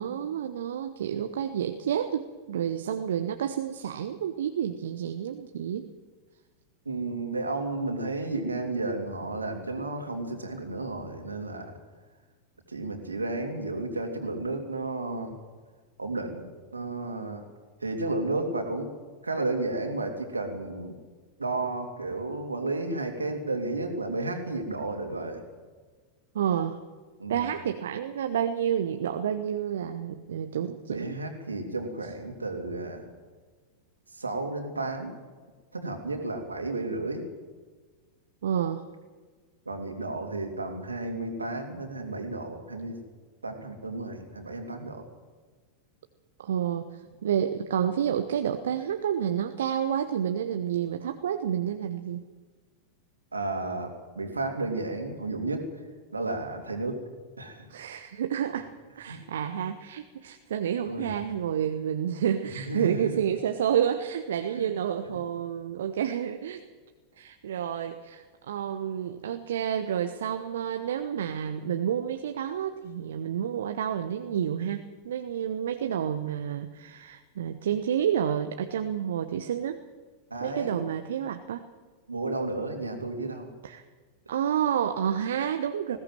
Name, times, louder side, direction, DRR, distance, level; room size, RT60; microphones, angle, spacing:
voice 1, 0.0-5.9 26.3-26.8 27.3-31.2 38.4-38.8 46.4-52.2 57.7-66.7 67.2-79.8 80.4-81.6 83.6-83.8 84.3-86.0, right 9 dB, 60° right, 7 dB, 1.0 m, -29 dB
voice 2, 6.8-11.7 12.7-15.4 16.0-17.5 17.8-18.9 19.2-21.0 21.4-25.4 27.2-27.5 30.9-33.1 34.1-35.1 35.7-37.2 39.6-43.0 43.4-45.0 53.3-55.6 56.1-57.0 57.4-57.7 59.1-59.2 60.8-61.1 62.5-63.1 64.5-64.7 65.1-65.2 80.3-80.8 82.1-83.5 85.9-86.0, right 2 dB, 80° right, 4 dB, 3.1 m, -32 dB
20.0 x 16.5 x 7.8 m, 1.4 s
figure-of-eight pair, 90°, 0 cm